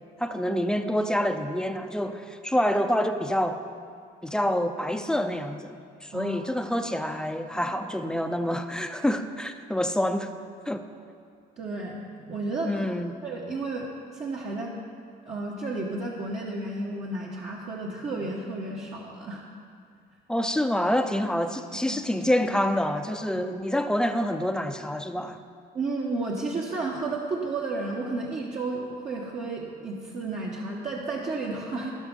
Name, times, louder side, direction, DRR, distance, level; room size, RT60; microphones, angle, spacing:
voice 1, 0.2-3.6 4.2-10.3 10.7-10.8 12.7-13.1 20.3-25.4, equal, 5° left, 7 dB, 0.6 m, -27 dB
voice 2, 6.1-6.7 11.6-12.9 13.2-14.7 15.2-19.4 21.9-22.0 25.7-32.0, right 2 dB, 45° right, -3 dB, 1.2 m, -32 dB
17.0 x 6.1 x 5.4 m, 2.3 s
cardioid pair, 110°, 17 cm